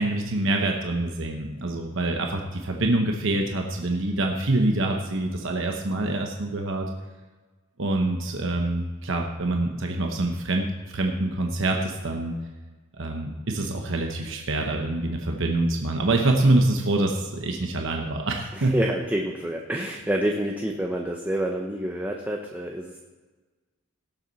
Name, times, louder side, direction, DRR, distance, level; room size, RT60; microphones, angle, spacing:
voice 1, 0.0-6.9 7.8-10.7 10.9-12.3 13.0-18.8, right 2 dB, 60° right, 2 dB, 1.0 m, -25 dB
voice 2, 18.5-23.0, right 1 dB, 10° right, 1 dB, 0.7 m, -28 dB
17.5 x 7.7 x 4.1 m, 1.3 s
head